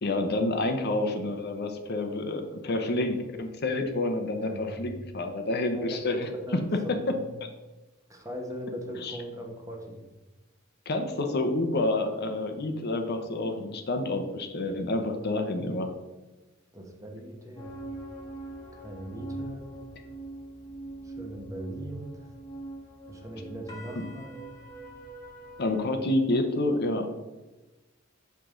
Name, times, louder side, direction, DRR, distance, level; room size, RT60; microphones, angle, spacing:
voice 1, 0.0-6.3 9.0-9.2 10.9-15.9 25.6-27.1, left 2 dB, 50° left, 5 dB, 0.7 m, -28 dB
voice 2, 4.4-4.8 5.7-7.3 8.1-10.0 16.7-17.8 18.7-19.7 21.0-22.3 23.1-24.4, equal, 15° right, 1 dB, 1.0 m, -39 dB
sound 1, 17.6-25.8, right 2 dB, 20° left, 1.2 m, -42 dB
6.8 x 4.9 x 3.8 m, 1.1 s
head